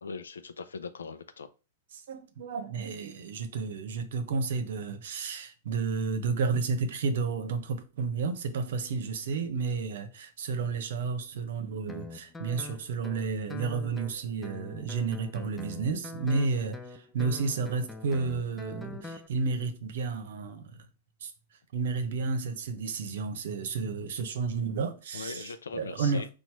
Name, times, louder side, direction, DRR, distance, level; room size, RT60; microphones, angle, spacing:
voice 1, 0.0-1.5 25.1-26.3, left 4 dB, 85° left, 0.5 m, -40 dB
voice 2, 2.1-16.8 17.1-20.8 21.2-21.3 21.7-26.3, right 4 dB, 70° right, 0.9 m, -31 dB
Guitar, 11.9-19.3, left 3 dB, 10° left, 0.5 m, -43 dB
4.3 x 2.6 x 4.6 m
hypercardioid pair, 115°, 0 cm